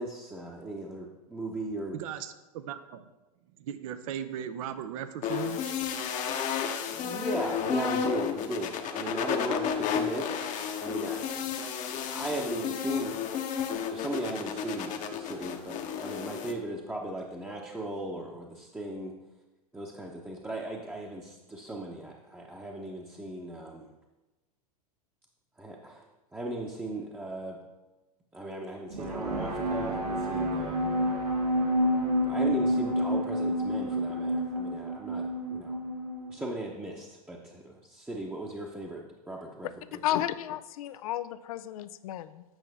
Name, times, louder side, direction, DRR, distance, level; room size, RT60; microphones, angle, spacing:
voice 1, 0.0-2.0 6.9-11.5 11.9-13.2 13.9-19.1 19.7-23.9 25.6-26.0 26.3-27.6 28.3-30.8 32.2-35.8 36.3-40.2, right 1 dB, 10° right, 0.9 m, -37 dB
voice 2, 1.9-3.0 3.6-5.7, right 9 dB, 60° right, 0.7 m, -37 dB
sound 1, 5.2-16.5, left 7 dB, 40° left, 0.9 m, -32 dB
sound 2, 28.9-36.5, equal, 85° right, 1.6 m, -29 dB
voice 3, 40.0-42.4, left 12 dB, 65° left, 0.5 m, -32 dB
8.9 x 5.7 x 3.5 m
hypercardioid pair, 95°, 20 cm